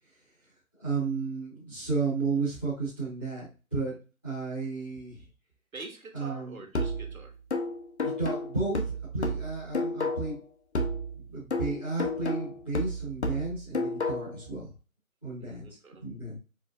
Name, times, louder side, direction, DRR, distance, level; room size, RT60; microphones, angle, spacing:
voice 1, 0.7-4.0 4.2-5.2 6.1-6.6 8.0-10.4 11.1-14.7 15.2-16.4, right 4 dB, 10° left, -13 dB, 0.9 m, -33 dB
voice 2, 5.7-7.3 15.4-16.1, right 3 dB, 75° right, 2 dB, 1.6 m, -45 dB
sound 1, 6.7-10.4 10.7-14.4, left 1 dB, 50° left, 0.7 m, -32 dB
4.5 x 3.2 x 2.3 m, 0.32 s
figure-of-eight pair, 170°, 42 cm